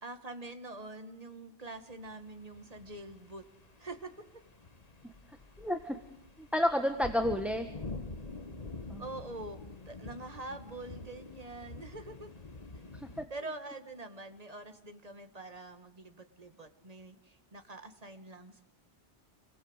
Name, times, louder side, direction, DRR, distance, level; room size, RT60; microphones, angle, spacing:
voice 1, 0.0-3.4 3.8-4.1 9.0-9.6 9.9-12.3 12.7-12.8 13.3-18.6, right 2 dB, 35° right, 7 dB, 2.0 m, -45 dB
sound 1, 1.9-13.2, left 3 dB, 35° left, 1.5 m, -47 dB
voice 2, 5.6-6.0 6.4-7.7 8.9-9.0 12.9-13.3, left 1 dB, ahead, 7 dB, 1.3 m, -31 dB
28.5 x 20.0 x 8.1 m, 0.76 s
omnidirectional pair, 1.2 m